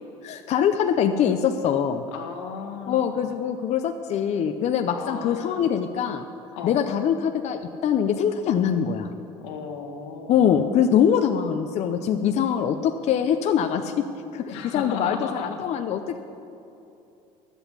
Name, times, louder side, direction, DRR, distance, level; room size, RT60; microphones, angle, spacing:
voice 1, 0.2-2.0 2.9-6.2 6.6-9.1 10.3-14.0 14.3-16.2, left 8 dB, 55° left, 6 dB, 0.7 m, -23 dB
voice 2, 2.1-3.3 4.9-5.6 6.5-6.8 9.4-10.6 14.5-15.6, left 6 dB, 90° left, 2 dB, 1.6 m, -35 dB
12.0 x 8.1 x 8.2 m, 2.8 s
supercardioid pair, 95°, 14 cm